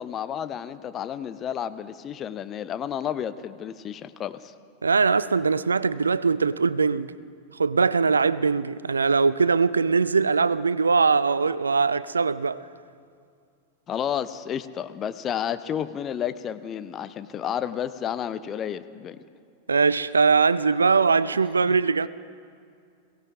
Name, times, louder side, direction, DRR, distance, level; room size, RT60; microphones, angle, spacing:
voice 1, 0.0-4.5 13.9-19.2 21.7-21.8, left 9 dB, 30° left, 0.5 m, -31 dB
voice 2, 4.8-7.1 7.5-12.7 19.7-22.1, right 4 dB, 75° right, 0.3 m, -21 dB
22.0 x 17.0 x 3.5 m
figure-of-eight pair, 90°, 0 cm